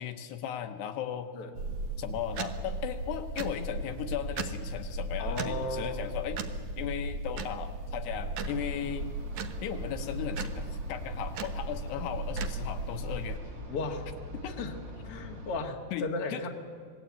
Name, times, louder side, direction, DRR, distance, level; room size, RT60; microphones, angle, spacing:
voice 1, 0.0-1.3 2.0-6.4 6.8-9.1 9.6-13.4 14.4-14.6 15.9-16.0 16.3-16.5, left 10 dB, 75° left, 7 dB, 3.0 m, -36 dB
sound 1, 1.5-13.4, right 2 dB, 65° right, 1.9 m, -36 dB
voice 2, 5.2-6.0 13.7-14.1 14.4-16.5, left 3 dB, 45° left, 2 dB, 2.2 m, -35 dB
sound 2, 8.4-15.6, right 1 dB, 40° right, 1.7 m, -44 dB
26.5 x 19.0 x 8.6 m, 2.2 s
omnidirectional pair, 4.9 m